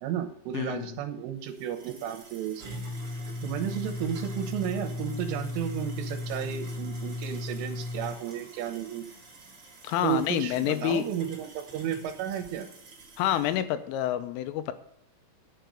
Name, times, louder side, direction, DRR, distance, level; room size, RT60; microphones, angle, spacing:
voice 1, 0.0-2.7 3.4-9.1 10.0-12.7, right 10 dB, 80° right, 6 dB, 3.4 m, -33 dB
voice 2, 0.5-1.0 9.8-11.0 13.2-14.7, left 12 dB, 85° left, 10 dB, 3.3 m, -28 dB
sound 1, 1.5-13.5, left 2 dB, 35° right, 2.9 m, -38 dB
11.5 x 6.9 x 6.4 m, 0.73 s
omnidirectional pair, 5.8 m